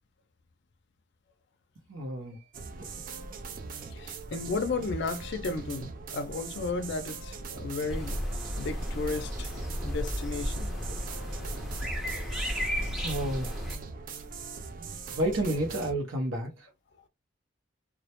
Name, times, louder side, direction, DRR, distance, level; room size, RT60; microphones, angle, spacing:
voice 1, 1.9-2.4 2.8-2.9 13.0-13.6 15.1-16.7, right 1 dB, 90° right, 0.7 m, -31 dB
sound 1, 2.5-15.9, right 4 dB, 45° right, 0.4 m, -41 dB
voice 2, 3.9-8.2 8.6-9.5 9.8-10.8, left 3 dB, 60° left, 0.4 m, -34 dB
sound 2, 7.9-13.8, equal, ahead, 0.6 m, -33 dB
2.1 x 2.1 x 2.8 m
head